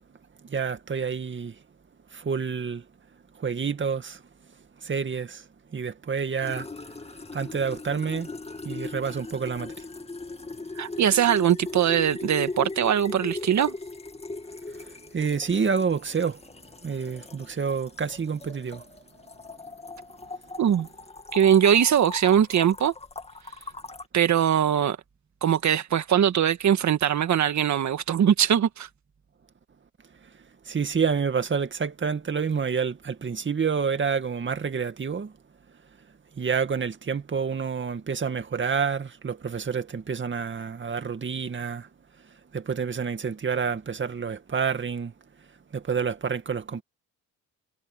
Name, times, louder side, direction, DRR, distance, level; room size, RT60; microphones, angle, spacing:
voice 1, 0.4-1.6 2.1-2.9 3.3-4.2 4.8-6.7 7.3-8.3 8.6-9.9 14.8-16.4 16.8-18.8 30.7-35.3 36.4-41.9 42.5-45.1 45.7-46.8, right 6 dB, 35° right, 2.2 m, -28 dB
sound 1, 6.4-24.1, left 3 dB, 20° left, 2.3 m, -39 dB
voice 2, 10.8-13.7 20.6-20.9 21.3-22.9 24.1-25.0 25.4-28.9, right 9 dB, 55° right, 1.8 m, -21 dB
cardioid pair, 85°, 34 cm